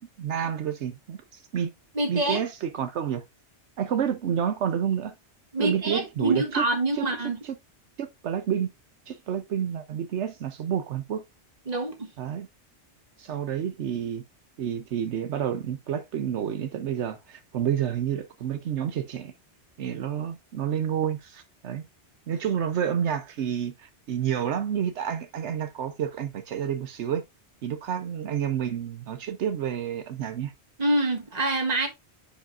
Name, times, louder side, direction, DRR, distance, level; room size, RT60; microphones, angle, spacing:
voice 1, 0.2-1.7 2.1-3.2 3.8-5.1 5.6-6.6 6.9-7.1 7.4-7.6 8.0-8.7 9.1-11.2 12.2-12.5 13.2-14.2 14.6-19.3 19.8-21.8 22.3-27.2 27.6-30.5, right 9 dB, 80° right, 1.0 m, -29 dB
voice 2, 1.9-2.4 5.5-7.4 11.7-12.1 30.8-31.9, right 2 dB, 35° right, 1.5 m, -26 dB
10.0 x 5.1 x 2.5 m
omnidirectional pair, 1.2 m